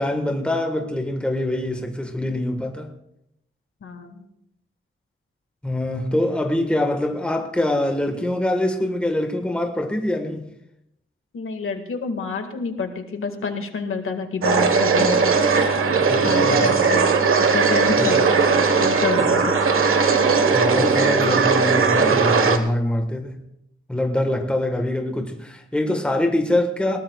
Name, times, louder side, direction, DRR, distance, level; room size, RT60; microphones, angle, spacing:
voice 1, 0.0-2.9 5.6-10.5 16.1-16.7 18.0-18.1 19.2-19.3 20.5-23.4 23.9-27.0, left 1 dB, 5° left, 1.5 m, -24 dB
voice 2, 3.8-4.3 11.3-15.3 16.2-17.1 17.5-18.4 18.8-19.6, left 4 dB, 90° left, 1.9 m, -28 dB
sound 1, 14.4-22.6, right 5 dB, 85° right, 1.3 m, -18 dB
20.5 x 18.0 x 2.4 m
wide cardioid pair, 175°, 21 cm